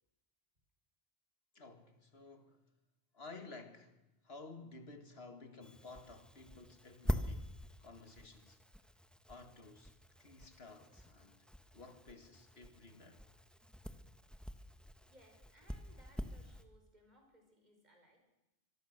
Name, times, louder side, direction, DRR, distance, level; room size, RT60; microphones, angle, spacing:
voice 1, 1.5-2.7 3.1-8.6 9.3-13.2, left 3 dB, 75° left, 2.2 m, -54 dB
sound 1, 5.6-16.6, equal, ahead, 1.2 m, -45 dB
voice 2, 15.0-18.2, equal, 45° right, 5.7 m, -65 dB
25.5 x 22.0 x 6.6 m
omnidirectional pair, 1.1 m